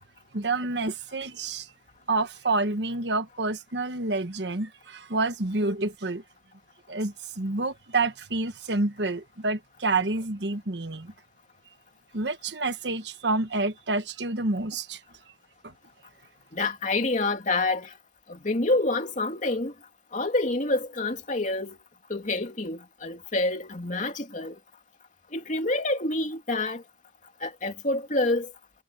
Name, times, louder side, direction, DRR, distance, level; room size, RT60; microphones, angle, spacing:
voice 1, 0.3-1.7 2.1-6.2 6.9-11.1 12.1-15.0 15.6-15.7, right 3 dB, 75° right, 1.4 m, -28 dB
voice 2, 16.5-17.9 18.3-19.7 20.1-21.8 22.1-24.6 25.3-26.8 27.4-28.5, left 2 dB, 45° left, 2.6 m, -27 dB
head